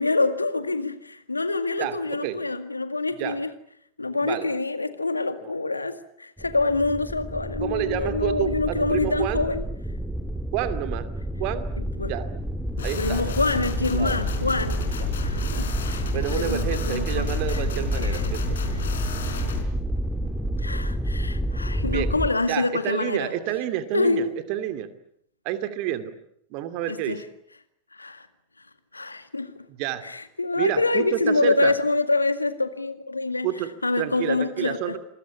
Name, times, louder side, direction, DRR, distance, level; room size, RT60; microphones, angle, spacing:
voice 1, 0.0-3.5 4.0-9.6 12.0-12.2 13.0-17.7 18.0-18.3 18.7-18.9 20.6-23.3 23.9-24.3 26.9-27.3 27.9-28.3 28.9-29.7 30.0-33.5 33.8-35.0, left 3 dB, 80° left, 1.9 m, -26 dB
sound 1, 6.4-22.3, equal, 5° right, 2.0 m, -29 dB
voice 2, 7.6-9.4 10.5-11.1 11.4-11.7 12.0-12.3 12.8-13.2 13.9-14.2 15.0-15.1 16.1-18.6 21.8-22.1 22.5-24.9 25.4-26.1 26.5-27.2 29.8-30.0 30.6-31.7 33.4-33.7 34.0-35.0, right 12 dB, 45° right, 2.5 m, -29 dB
sound 2, 12.8-19.6, left 6 dB, 65° left, 4.3 m, -33 dB
27.5 x 21.5 x 8.5 m
figure-of-eight pair, 90°, 0 cm